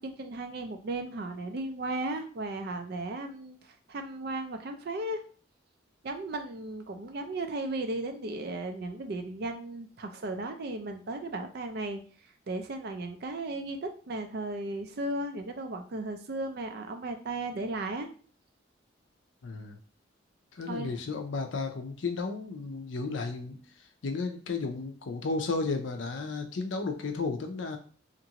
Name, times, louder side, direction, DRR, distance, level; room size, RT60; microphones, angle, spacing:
voice 1, 0.0-5.2 6.0-12.0 12.5-18.1 20.7-20.9, right 2 dB, 55° right, 6 dB, 0.4 m, -35 dB
voice 2, 19.4-19.8 20.5-23.6 24.0-27.8, left 4 dB, 75° left, 6 dB, 0.5 m, -33 dB
2.9 x 2.5 x 2.8 m, 0.42 s
head